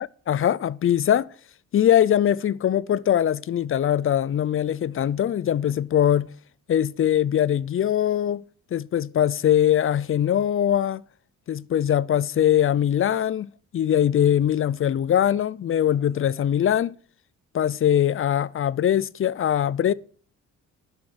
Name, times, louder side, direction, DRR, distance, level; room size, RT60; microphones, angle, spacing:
voice 1, 0.3-1.3 1.7-6.3 6.7-8.4 8.7-11.0 11.5-16.9 17.5-19.9, left 10 dB, 45° left, 0.6 m, -22 dB
11.5 x 7.2 x 7.9 m
cardioid pair, 90°, 30 cm